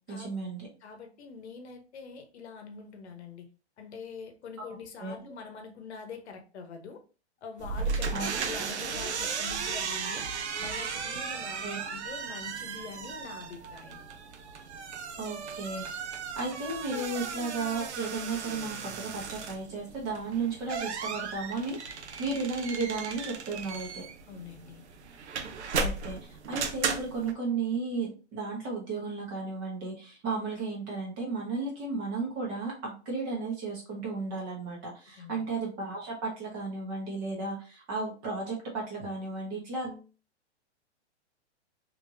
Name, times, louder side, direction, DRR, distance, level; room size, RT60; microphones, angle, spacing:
voice 1, 0.1-0.7 4.7-5.1 8.1-8.3 11.6-11.9 15.2-15.8 16.4-24.0 25.7-40.0, right 3 dB, 25° right, -2 dB, 1.1 m, -34 dB
voice 2, 0.8-3.5 3.8-7.0 7.4-10.3 10.6-11.6 11.9-14.0 24.3-24.8 35.2-35.5, left 5 dB, 70° left, 6 dB, 0.9 m, -44 dB
sound 1, 7.6-27.3, right 5 dB, 70° right, 0.8 m, -36 dB
3.4 x 3.1 x 2.6 m, 0.34 s
hypercardioid pair, 165°, 35 cm